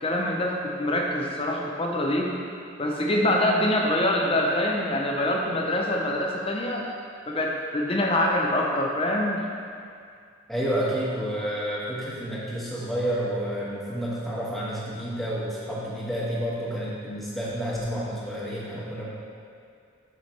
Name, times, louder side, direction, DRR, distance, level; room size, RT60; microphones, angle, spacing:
voice 1, 0.0-2.4 2.8-6.9 7.3-9.4, left 1 dB, 25° left, 0 dB, 0.6 m, -25 dB
voice 2, 10.5-19.1, equal, ahead, -8 dB, 1.3 m, -30 dB
8.3 x 6.7 x 3.2 m, 2.3 s
head